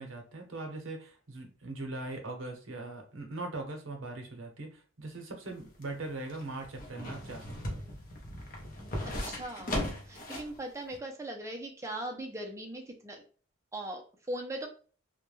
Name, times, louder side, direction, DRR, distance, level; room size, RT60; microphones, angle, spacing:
voice 1, 0.0-7.8, right 2 dB, 75° right, 3 dB, 0.7 m, -41 dB
sound 1, 5.5-10.6 10.9-11.0, left 1 dB, 45° left, 0.6 m, -38 dB
voice 2, 9.0-9.8 10.0-13.2 13.7-14.7, right 1 dB, 15° right, 2 dB, 0.4 m, -39 dB
2.2 x 2.1 x 3.0 m, 0.40 s
head